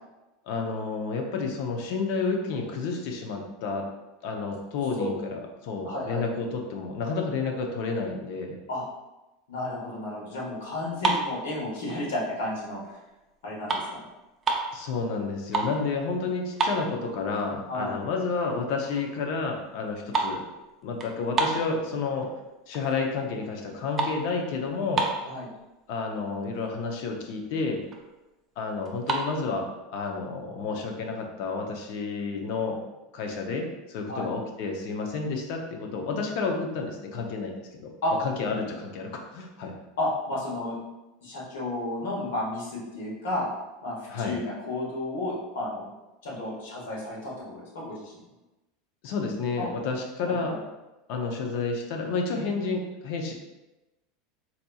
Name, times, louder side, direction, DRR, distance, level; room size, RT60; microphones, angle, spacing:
voice 1, 0.5-3.9 4.2-8.6 14.7-20.4 20.8-22.3 22.7-25.1 25.9-27.8 28.6-32.8 33.1-37.9 38.2-39.7 44.1-44.3 49.0-50.6 51.1-53.3, left 4 dB, 60° left, 2 dB, 0.6 m, -30 dB
voice 2, 5.8-6.3 8.7-8.8 9.5-12.8 13.4-14.0 17.7-18.0 25.2-25.4 34.1-34.3 38.0-38.1 40.0-40.7 41.2-43.4 43.8-45.9 46.2-48.1 49.6-49.7 50.2-50.6, left 1 dB, 90° left, -4 dB, 1.3 m, -32 dB
sound 1, 10.9-12.3 12.7-13.0 13.3-14.8 15.2-15.8 16.1-16.2 16.5-17.4 17.8-17.9 18.5-18.6 18.9-19.2 19.5-22.3 22.7-23.2 23.5-25.4 26.1-26.2 26.4-26.7 27.1-27.2 27.4-28.1 28.9-29.3, right 4 dB, 25° right, 0.4 m, -30 dB
4.0 x 2.8 x 2.3 m, 1.0 s
supercardioid pair, 150°, 0 cm